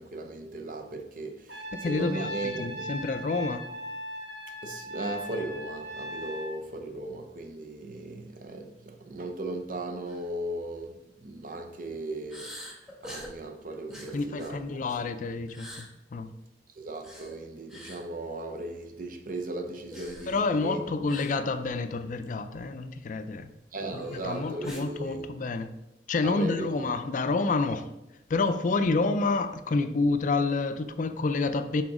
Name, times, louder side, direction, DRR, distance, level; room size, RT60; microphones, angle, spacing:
voice 1, 0.0-2.9 4.6-12.6 13.0-14.8 16.7-20.9 23.7-25.3 26.2-26.9, right 2 dB, 50° right, 0.7 m, -37 dB
Trumpet, 1.5-6.6, equal, 70° right, 1.4 m, -38 dB
voice 2, 1.7-3.6 14.1-16.3 20.3-23.5 23.9-25.7 26.1-27.9 28.3-31.8, left 3 dB, 45° left, 0.4 m, -28 dB
sound 1, 10.1-10.3 10.7-10.8 12.3-13.4 13.9-15.1 15.5-15.9 16.9-17.3 17.7-18.0 19.9-20.4 21.1-21.4 21.6-21.8 22.2-22.3 23.9-24.9, equal, 5° right, 1.1 m, -44 dB
6.2 x 3.8 x 4.8 m
head